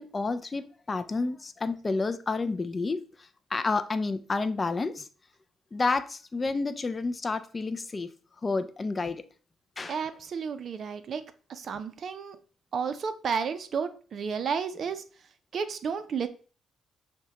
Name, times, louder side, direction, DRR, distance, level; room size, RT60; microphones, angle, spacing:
voice 1, 0.0-5.1 5.7-8.1 8.4-9.2 9.8-10.0, left 3 dB, 30° left, 0.3 m, -30 dB
voice 2, 9.9-11.2 11.5-12.4 12.7-15.0 15.5-16.3, right 6 dB, 55° right, 0.4 m, -32 dB
6.0 x 2.2 x 2.8 m
cardioid pair, 90°, 0 cm